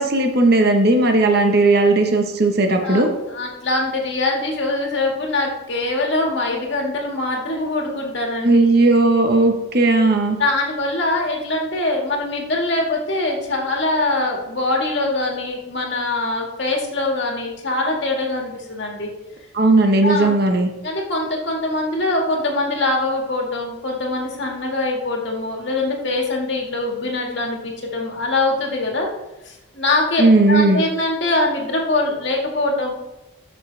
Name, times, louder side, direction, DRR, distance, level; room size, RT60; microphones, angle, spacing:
voice 1, 0.0-3.1 8.4-10.4 19.5-20.7 30.2-30.8, right 2 dB, 50° right, 4 dB, 1.2 m, -16 dB
voice 2, 2.8-8.6 10.4-19.1 20.0-20.3 20.8-29.1 29.4-32.9, left 2 dB, 55° left, 0 dB, 2.0 m, -23 dB
13.5 x 6.3 x 3.4 m, 0.96 s
head